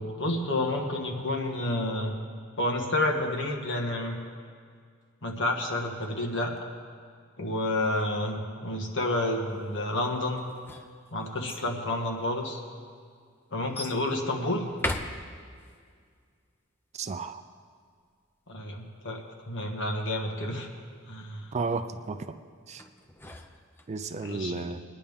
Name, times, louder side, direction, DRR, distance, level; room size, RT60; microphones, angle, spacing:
voice 1, 0.0-2.1 2.6-4.2 5.2-6.5 7.4-10.4 11.1-12.6 13.5-14.6 18.5-20.7 21.1-21.5 24.2-24.6, left 1 dB, 60° left, 2 dB, 1.6 m, -30 dB
sound 1, 10.4-11.7 12.5-12.6 13.7-14.0 14.7-15.7 22.8-24.1, left 1 dB, 10° left, 0.6 m, -37 dB
voice 2, 16.9-17.4 21.5-22.4 22.7-22.8 23.9-24.8, right 4 dB, 30° right, 9 dB, 0.4 m, -33 dB
21.5 x 10.0 x 3.6 m, 2.1 s
head